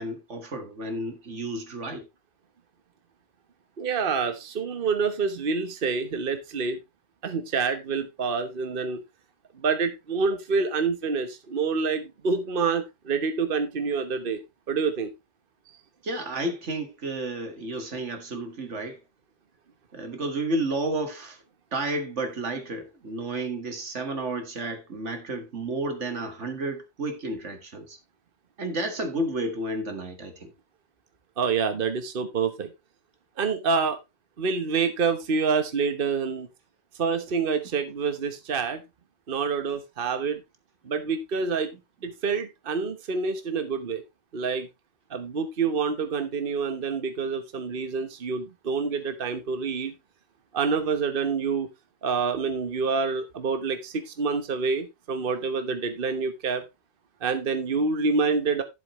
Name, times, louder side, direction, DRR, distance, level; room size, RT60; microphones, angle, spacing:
voice 1, 0.0-2.1 16.0-19.0 19.9-21.4 21.7-28.0 28.6-30.5, right 2 dB, 90° right, 2.2 m, -31 dB
voice 2, 3.8-6.8 7.2-9.0 9.5-14.4 14.7-15.1 31.4-32.7 33.4-34.0 34.4-36.5 37.0-38.8 39.3-40.4 40.8-41.7 42.0-44.0 44.3-44.7 45.1-49.9 50.5-51.7 52.0-56.7 57.2-58.6, right 5 dB, 50° right, 1.3 m, -27 dB
11.5 x 7.5 x 3.1 m
omnidirectional pair, 1.2 m